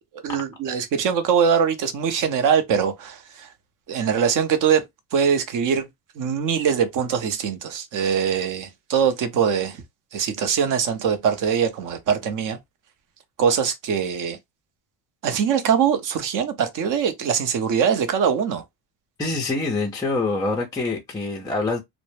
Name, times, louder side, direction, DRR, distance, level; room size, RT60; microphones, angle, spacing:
voice 1, 0.2-3.5 3.9-4.8 5.1-5.9 6.2-9.8 10.1-12.6 13.4-14.4 15.2-18.6, right 7 dB, 45° right, 0.6 m, -22 dB
voice 2, 19.2-21.8, left 3 dB, 10° left, 0.4 m, -25 dB
2.1 x 2.0 x 3.0 m
cardioid pair, 120°, 46 cm